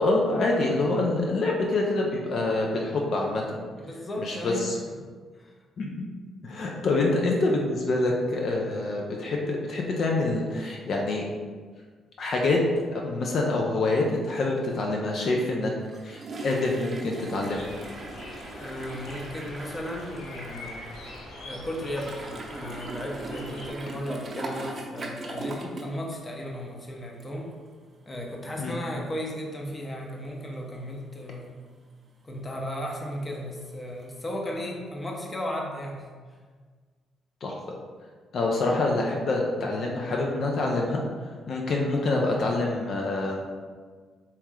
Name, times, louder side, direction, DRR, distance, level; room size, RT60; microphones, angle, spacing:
voice 1, 0.0-3.6 4.2-4.8 5.8-5.9 6.4-11.3 12.2-12.6 12.9-15.7 16.0-17.7 28.6-28.7 37.4-37.8 38.3-41.0 41.5-43.5, left 2 dB, 60° left, -1 dB, 0.6 m, -26 dB
voice 2, 3.8-5.0 5.3-5.5 6.9-7.1 18.6-20.9 21.4-27.6 28.1-31.6 32.2-36.1, equal, 25° left, 0 dB, 0.8 m, -35 dB
sound 1, 15.8-26.0 26.2-26.5 27.2-27.3 27.7-27.8 34.0-34.1, right 2 dB, 40° right, 0.7 m, -40 dB
sound 2, 17.5-23.7, left 1 dB, 85° left, 1.0 m, -43 dB
4.4 x 3.1 x 3.7 m, 1.5 s
cardioid pair, 90°, 0 cm